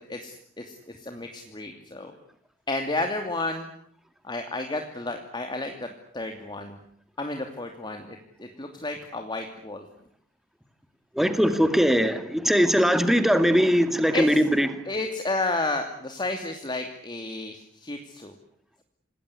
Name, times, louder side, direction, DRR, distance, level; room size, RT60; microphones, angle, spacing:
voice 1, 0.1-2.1 2.7-3.7 4.2-5.9 6.1-6.8 7.2-9.8 14.1-14.4 14.8-18.3, left 2 dB, 25° left, 2.7 m, -32 dB
voice 2, 11.2-14.8, equal, ahead, 2.4 m, -21 dB
27.5 x 20.0 x 9.9 m
head